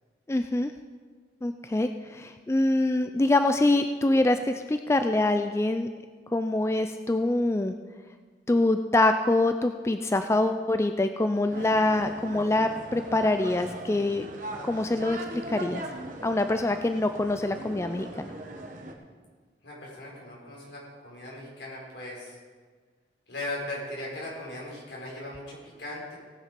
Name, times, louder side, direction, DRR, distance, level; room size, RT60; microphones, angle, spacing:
voice 1, 0.3-0.7 1.4-5.9 6.3-7.7 8.5-14.3 14.7-15.8 16.2-18.3, left 2 dB, 15° left, 8 dB, 0.3 m, -25 dB
sound 1, 11.5-18.9, right 1 dB, 45° right, 1.3 m, -40 dB
voice 2, 19.6-22.4 23.3-26.1, left 1 dB, 75° left, -4 dB, 4.4 m, -38 dB
18.0 x 6.7 x 5.2 m, 1.5 s
head